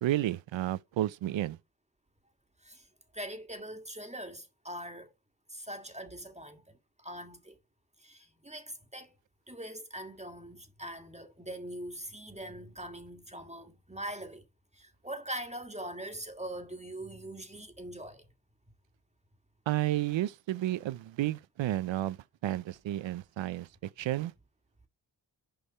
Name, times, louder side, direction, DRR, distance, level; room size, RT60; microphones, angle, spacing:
voice 1, 0.0-1.6 19.7-22.2 22.4-23.7 24.0-24.3, right 14 dB, 75° right, 0.6 m, -31 dB
voice 2, 3.1-5.1 5.5-7.6 8.0-9.1 9.5-14.5 14.7-18.3, right 1 dB, 15° right, 1.6 m, -42 dB
6.8 x 5.3 x 5.4 m
supercardioid pair, 40°, 45 cm